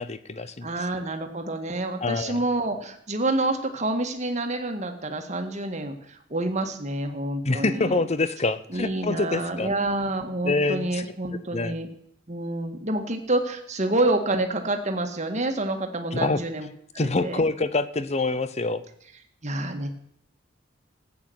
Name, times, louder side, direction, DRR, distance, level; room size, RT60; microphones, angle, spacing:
voice 1, 0.0-0.7 2.0-2.4 7.4-9.7 10.4-11.0 11.5-11.8 16.1-16.4 17.0-18.8, left 3 dB, 35° left, 13 dB, 0.8 m, -26 dB
voice 2, 0.6-8.0 8.7-11.9 12.3-16.7 16.9-17.4 19.4-19.9, right 2 dB, 35° right, 4 dB, 1.8 m, -28 dB
14.5 x 8.6 x 8.0 m, 0.69 s
head